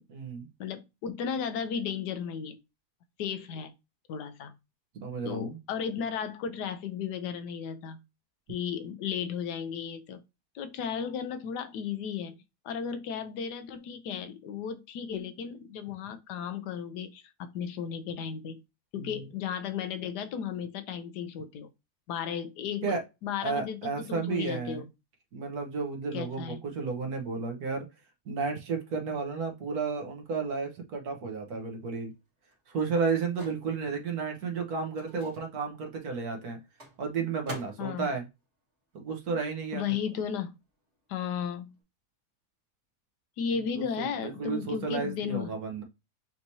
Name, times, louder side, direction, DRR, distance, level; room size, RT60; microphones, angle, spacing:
voice 1, 0.1-0.5 5.0-5.6 18.9-19.2 22.8-23.0 23.4-24.9 25.3-27.9 28.2-32.1 32.7-36.6 37.0-38.2 38.9-39.9 43.8-45.8, right 4 dB, 70° right, 1.5 m, -32 dB
voice 2, 0.6-2.6 3.2-3.7 4.1-4.5 5.2-8.0 8.5-10.2 10.5-18.6 18.9-21.7 22.1-23.0 23.2-24.8 26.1-26.6 37.8-38.1 39.7-40.5 41.1-41.8 43.4-45.5, left 7 dB, 90° left, 1.3 m, -34 dB
Microwave oven, 32.1-39.7 39.9-41.8, equal, 45° right, 2.0 m, -50 dB
5.7 x 3.1 x 2.7 m
omnidirectional pair, 1.7 m